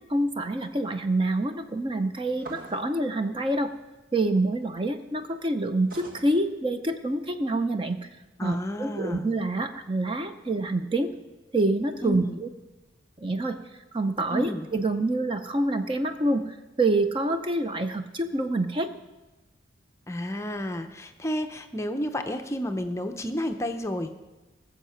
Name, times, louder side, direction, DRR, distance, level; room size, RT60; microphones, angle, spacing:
voice 1, 0.1-3.7 4.1-8.1 8.4-11.1 11.5-12.5 13.2-13.6 13.9-18.9, right 2 dB, 25° right, 8 dB, 0.6 m, -27 dB
sound 1, 2.4-2.9 5.9-6.3, right 2 dB, 45° right, 1.5 m, -42 dB
voice 2, 8.4-9.3 12.0-12.4 14.3-14.7 20.1-24.1, equal, 15° left, 7 dB, 0.6 m, -31 dB
20.0 x 7.2 x 5.7 m, 1.1 s
head